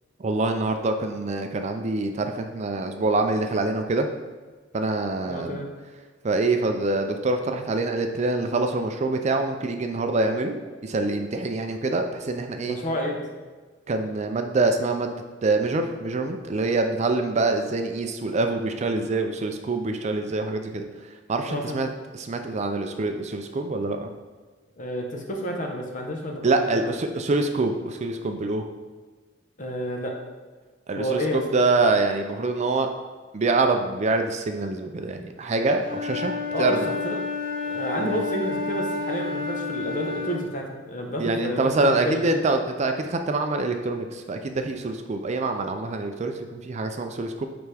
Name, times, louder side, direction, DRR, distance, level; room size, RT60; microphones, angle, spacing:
voice 1, 0.2-4.1 4.7-5.6 6.2-10.6 10.8-12.8 13.9-20.8 21.3-21.9 22.1-24.1 26.4-28.6 30.9-32.9 33.3-36.3 36.6-36.9 38.0-38.2 41.2-47.4, right 3 dB, 35° right, 5 dB, 0.4 m, -25 dB
voice 2, 5.3-5.7 12.6-13.2 21.5-21.8 24.8-26.9 29.6-30.2 31.0-31.6 36.5-37.2 37.7-42.5, equal, 40° left, 1 dB, 0.9 m, -30 dB
Wind instrument woodwind instrument, 35.8-40.5, left 4 dB, 80° left, 1.6 m, -30 dB
8.8 x 3.5 x 3.4 m, 1.4 s
head